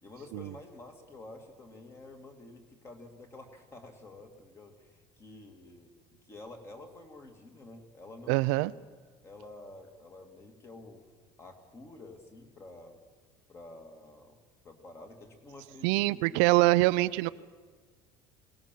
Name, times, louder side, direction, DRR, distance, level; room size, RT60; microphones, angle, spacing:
voice 1, 0.0-8.8 9.2-11.0 11.4-13.0 13.5-14.4 14.6-16.9 17.2-17.3, left 2 dB, 20° left, 6 dB, 2.2 m, -50 dB
voice 2, 8.3-8.7 15.8-17.3, right 20 dB, 80° right, 15 dB, 0.5 m, -24 dB
22.0 x 18.0 x 7.5 m, 1.4 s
cardioid pair, 170°, 13 cm